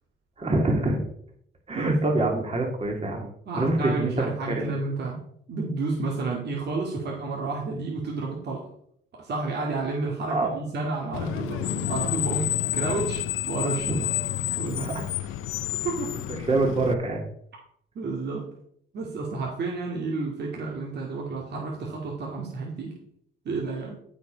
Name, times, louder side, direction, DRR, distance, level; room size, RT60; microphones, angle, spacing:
voice 1, 0.4-1.0 1.7-3.3 3.6-4.1 4.5-4.7 10.3-10.5 13.9-14.0 14.8-14.9 16.5-17.2, right 2 dB, 30° right, 1 dB, 2.3 m, -25 dB
voice 2, 3.5-8.7 9.1-14.2 14.6-14.9 15.8-16.2 17.9-18.6 18.9-23.0 23.4-24.0, right 3 dB, 55° right, -2 dB, 2.3 m, -31 dB
Screech, 11.1-16.9, left 13 dB, 90° left, 0.7 m, -29 dB
14.0 x 5.1 x 5.2 m, 0.68 s
cardioid pair, 90°, 20 cm